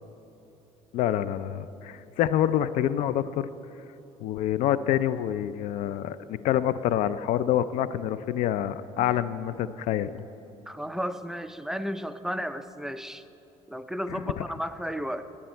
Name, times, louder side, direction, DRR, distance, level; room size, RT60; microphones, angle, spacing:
voice 1, 0.9-3.5 4.2-10.2 14.1-14.4, left 11 dB, 70° left, 15 dB, 0.4 m, -27 dB
voice 2, 10.7-13.2 13.7-15.3, equal, 5° right, 10 dB, 0.4 m, -33 dB
17.5 x 8.6 x 4.5 m, 2.9 s
cardioid pair, 100°, 13 cm